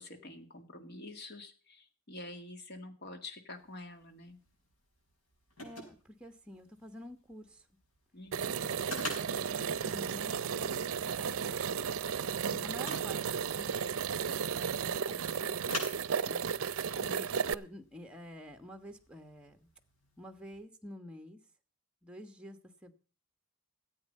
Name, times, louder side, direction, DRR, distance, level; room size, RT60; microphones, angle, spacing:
voice 1, 0.0-4.4 8.1-8.5 12.0-12.7 13.0-13.3 16.9-17.2, left 2 dB, 50° left, 6 dB, 2.2 m, -48 dB
sound 1, 3.5-20.6, left 2 dB, 85° left, 5.7 m, -49 dB
voice 2, 5.6-7.7 8.4-8.5 8.8-11.6 12.6-15.8 16.2-16.5 17.1-19.6 20.2-21.4 22.0-22.9, equal, 5° right, 6 dB, 1.2 m, -50 dB
sound 2, 8.3-17.5, right 6 dB, 75° right, 0.5 m, -34 dB
14.5 x 8.5 x 5.4 m, 0.41 s
head